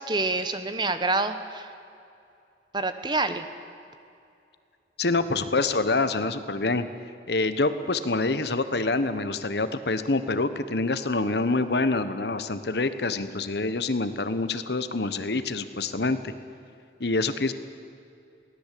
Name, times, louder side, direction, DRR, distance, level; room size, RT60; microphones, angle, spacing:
voice 1, 0.0-1.7 2.7-3.4, right 3 dB, 25° right, 9 dB, 1.0 m, -27 dB
voice 2, 5.0-6.9 7.3-16.3 17.0-17.5, left 3 dB, 70° left, 11 dB, 1.1 m, -26 dB
22.5 x 17.0 x 8.5 m, 2.5 s
head